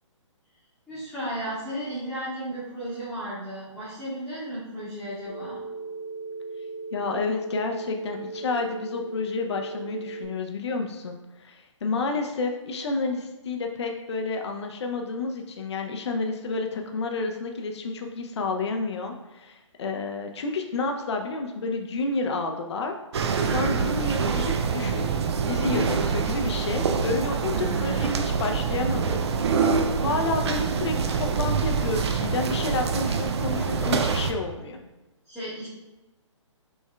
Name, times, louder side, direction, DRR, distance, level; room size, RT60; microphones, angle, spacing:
voice 1, 0.9-5.6 27.4-28.3 35.2-35.7, right 1 dB, ahead, -16 dB, 1.3 m, -34 dB
Telephone, 5.3-10.3, right 3 dB, 15° right, 1.1 m, -37 dB
voice 2, 6.9-23.0 23.4-25.1 25.5-29.2 30.0-34.8, left 3 dB, 60° left, 4 dB, 0.6 m, -30 dB
sound 1, 23.1-34.3, right 5 dB, 55° right, 0.5 m, -25 dB
6.2 x 3.5 x 2.2 m, 1.1 s
hypercardioid pair, 140°, 16 cm